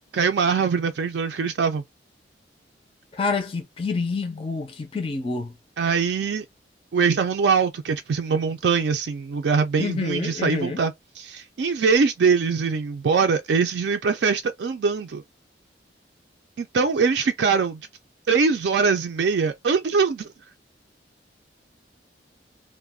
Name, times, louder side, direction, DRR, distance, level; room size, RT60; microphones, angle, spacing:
voice 1, 0.1-1.8 5.8-6.4 6.9-15.2 16.6-17.8 18.3-20.3, right 5 dB, 70° right, 0.4 m, -22 dB
voice 2, 3.2-5.5 9.8-10.8, left 4 dB, 30° left, 0.4 m, -27 dB
2.3 x 2.1 x 3.4 m
head